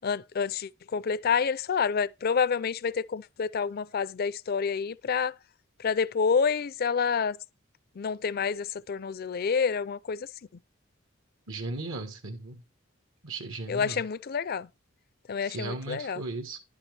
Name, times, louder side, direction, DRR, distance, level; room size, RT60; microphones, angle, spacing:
voice 1, 0.0-5.3 5.8-7.4 8.0-10.3 13.7-14.7 15.3-16.2, left 6 dB, 45° left, 0.4 m, -28 dB
voice 2, 11.5-12.6 13.2-14.0 15.4-16.6, right 2 dB, 75° right, 1.3 m, -36 dB
10.5 x 7.0 x 3.3 m
head